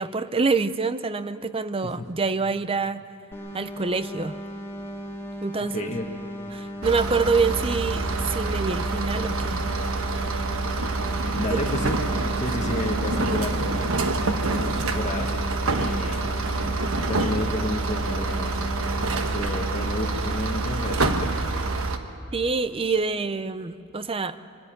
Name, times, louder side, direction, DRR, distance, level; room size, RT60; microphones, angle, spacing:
voice 1, 0.0-3.0 3.5-4.4 5.4-5.9 6.5-9.6 11.5-11.6 22.3-24.4, right 4 dB, 25° right, 13 dB, 0.6 m, -26 dB
sound 1, 3.3-19.3, equal, 10° left, 1.6 m, -37 dB
voice 2, 5.7-6.1 11.3-12.0 12.4-13.7 14.4-15.3 15.6-16.2 17.0-18.7 19.3-21.3, left 1 dB, 35° left, 3 dB, 1.4 m, -31 dB
sound 2, 6.8-22.0, right 3 dB, 65° right, 1.2 m, -26 dB
24.5 x 13.0 x 9.2 m, 3.0 s
head